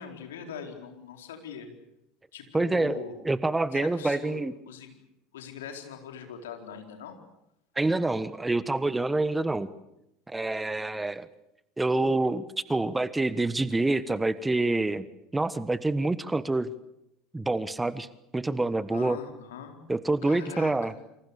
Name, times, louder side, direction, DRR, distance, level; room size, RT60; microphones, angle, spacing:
voice 1, 0.0-1.7 2.3-3.1 3.7-4.9 5.3-7.1 18.9-19.8 20.2-21.0, left 7 dB, 75° left, 4 dB, 4.3 m, -42 dB
voice 2, 2.5-4.5 7.7-9.7 10.3-11.3 11.8-15.0 15.3-16.7 17.3-18.1 18.3-19.2 19.9-20.9, right 2 dB, 10° right, 15 dB, 1.3 m, -27 dB
28.0 x 26.5 x 7.0 m, 0.84 s
figure-of-eight pair, 70°, 0 cm